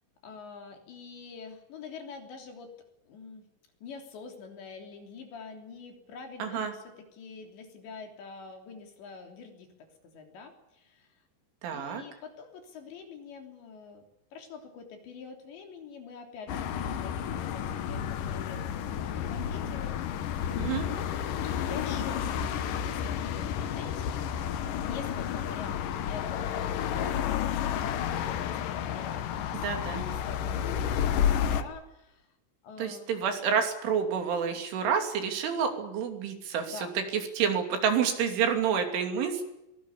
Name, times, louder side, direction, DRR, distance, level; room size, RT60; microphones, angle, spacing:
voice 1, 0.2-2.8 3.0-3.5 3.8-11.1 11.7-14.1 14.3-21.1 21.4-24.2 24.8-32.3 32.6-33.1 36.6-36.9, left 5 dB, 60° left, 4 dB, 5.4 m, -45 dB
voice 2, 6.4-6.7 11.6-12.0 20.6-20.9 29.6-30.0 32.8-39.4, right 7 dB, 70° right, 6 dB, 5.3 m, -29 dB
sound 1, 16.5-31.6, left 9 dB, 85° left, 1.9 m, -31 dB
23.5 x 19.5 x 8.5 m, 0.89 s
omnidirectional pair, 5.9 m